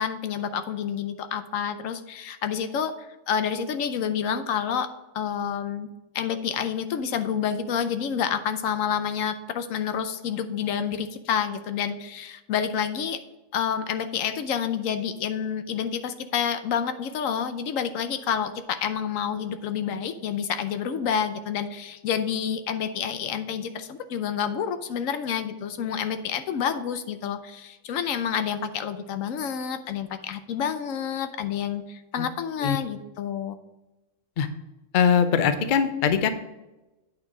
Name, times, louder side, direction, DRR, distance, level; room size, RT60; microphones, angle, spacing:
voice 1, 0.0-5.9 6.1-13.2 13.5-33.5, left 8 dB, 90° left, 10 dB, 1.1 m, -29 dB
voice 2, 34.9-36.3, left 7 dB, 50° left, 9 dB, 0.7 m, -21 dB
8.6 x 4.5 x 4.9 m, 1.0 s
omnidirectional pair, 1.3 m